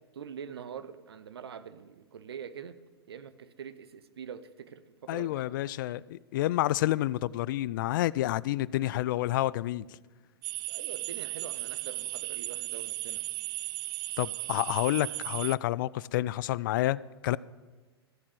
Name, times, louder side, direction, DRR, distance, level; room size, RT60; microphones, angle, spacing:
voice 1, 0.1-2.8 3.1-5.4 5.8-6.0 8.8-9.2 10.7-13.3, right 7 dB, 70° right, 13 dB, 0.8 m, -44 dB
voice 2, 5.1-9.9 14.2-17.4, left 15 dB, 50° left, 21 dB, 0.4 m, -29 dB
sound 1, 10.4-15.6, right 19 dB, 30° right, 0.3 m, -36 dB
14.5 x 7.3 x 7.6 m, 1.3 s
figure-of-eight pair, 100°, 14 cm